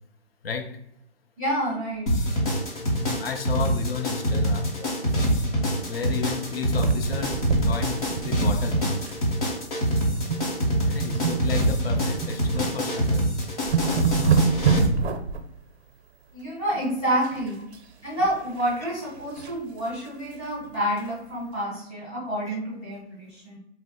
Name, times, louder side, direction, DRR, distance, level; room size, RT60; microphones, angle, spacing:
voice 1, 0.4-0.8 2.7-4.8 5.8-9.1 10.9-13.3 22.5-22.6, left 6 dB, 60° left, 5 dB, 0.5 m, -33 dB
voice 2, 1.4-2.1 4.8-4.9 16.3-17.6 18.0-23.6, right 1 dB, 5° left, -13 dB, 0.4 m, -28 dB
sound 1, 2.1-14.9, equal, 35° left, 0.8 m, -25 dB
sound 2, 6.8-9.2 9.4-9.7 10.2-10.5 10.8-12.7 13.2-13.3 13.5-15.4 17.2-17.8 18.1-19.6 20.1-20.2 20.4-20.5 21.0-21.1, right 6 dB, 75° right, 0.6 m, -27 dB
2.8 x 2.0 x 3.9 m, 0.75 s
hypercardioid pair, 170°, 33 cm